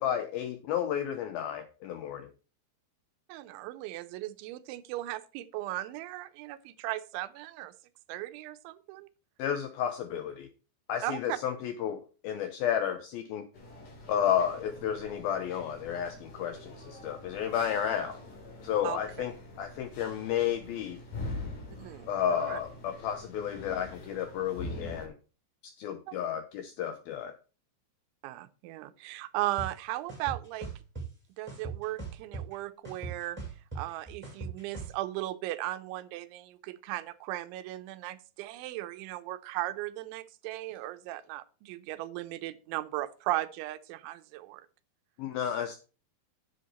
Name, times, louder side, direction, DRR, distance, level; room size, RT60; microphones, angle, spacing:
voice 1, 0.0-2.3 9.4-10.5 10.9-13.5 14.1-18.2 18.6-21.0 22.1-25.1 25.8-27.3 45.2-45.8, left 9 dB, 85° left, 2.1 m, -32 dB
voice 2, 3.3-7.7 8.1-9.1 11.0-11.4 18.8-19.0 21.8-22.6 28.2-30.7 31.4-33.4 33.8-44.7, right 16 dB, 85° right, 3.1 m, -37 dB
sound 1, 13.5-25.1, left 2 dB, 50° left, 4.4 m, -44 dB
sound 2, 29.6-29.7 30.1-31.1 31.5-32.5 32.8-34.9, right 3 dB, ahead, 6.6 m, -39 dB
9.9 x 7.9 x 4.2 m
omnidirectional pair, 5.2 m